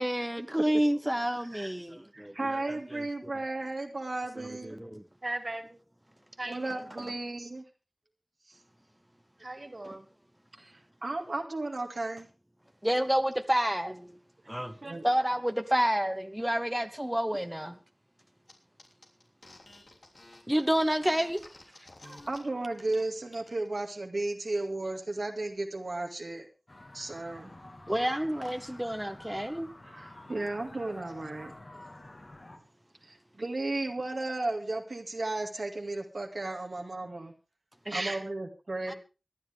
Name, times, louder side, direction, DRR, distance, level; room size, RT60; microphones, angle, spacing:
voice 1, 0.0-3.3 4.4-5.0 7.0-7.1 12.8-14.2 14.5-14.8 15.0-17.8 20.5-21.5 27.9-29.7 38.9-39.0, equal, 10° right, 1.0 m, -29 dB
voice 2, 2.1-4.8 6.5-7.6 10.6-10.7 11.0-12.3 14.8-15.1 22.0-26.5 26.9-27.5 29.9-31.5 33.0-37.3 37.9-38.9, right 2 dB, 80° right, 2.2 m, -34 dB
voice 3, 5.2-5.8 6.4-6.8 9.4-10.1 37.8-38.2, right 2 dB, 55° right, 2.8 m, -37 dB
sound 1, 18.5-18.6 18.8-22.4 22.7-23.0 23.3-23.8, left 2 dB, 80° left, 3.4 m, -52 dB
sound 2, 26.7-32.6, left 1 dB, 55° left, 3.0 m, -49 dB
24.5 x 10.5 x 3.5 m
wide cardioid pair, 45°, 0 cm